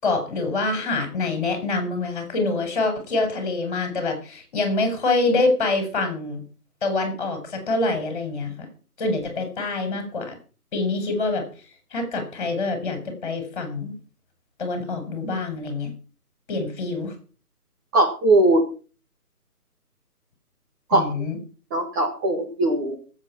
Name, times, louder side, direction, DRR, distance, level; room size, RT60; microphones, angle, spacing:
voice 1, 0.0-6.4 6.8-8.5 9.0-10.4 10.7-11.4 11.9-13.9 14.6-15.9 16.5-17.1 20.9-21.4, left 3 dB, 30° left, 6 dB, 5.7 m, -25 dB
voice 2, 17.9-18.6 20.9-21.0 21.7-23.0, right 2 dB, 15° right, -1 dB, 1.4 m, -19 dB
18.0 x 8.3 x 6.1 m, 0.38 s
figure-of-eight pair, 155°, 46 cm